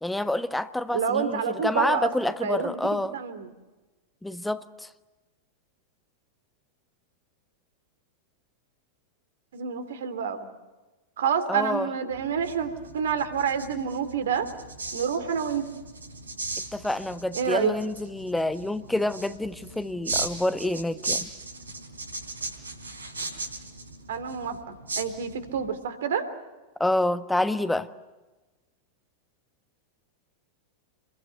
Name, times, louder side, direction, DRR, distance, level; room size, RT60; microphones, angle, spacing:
voice 1, 0.0-3.2 4.2-4.9 11.5-11.9 16.7-21.3 26.8-27.9, left 1 dB, 5° left, 1.3 m, -28 dB
voice 2, 0.9-2.1 2.4-3.5 9.5-10.5 11.2-14.5 14.9-15.7 17.3-17.7 24.1-24.6 25.0-26.3, right 7 dB, 60° right, 3.0 m, -28 dB
sound 1, 12.1-25.7, right 2 dB, 75° right, 3.6 m, -37 dB
28.0 x 22.0 x 8.1 m
figure-of-eight pair, 90°, 0 cm